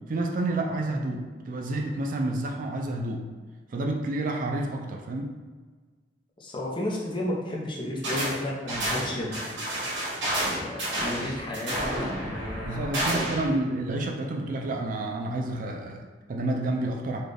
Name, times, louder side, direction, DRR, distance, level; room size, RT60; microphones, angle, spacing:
voice 1, 0.1-3.3 3.7-5.3 12.7-17.2, right 2 dB, 45° right, 2 dB, 0.4 m, -29 dB
voice 2, 6.4-9.5 10.5-13.2, left 1 dB, 25° left, -3 dB, 0.7 m, -33 dB
sound 1, 8.0-8.4 8.7-13.5, right 1 dB, 80° right, 1.4 m, -30 dB
4.1 x 2.3 x 3.3 m, 1.4 s
head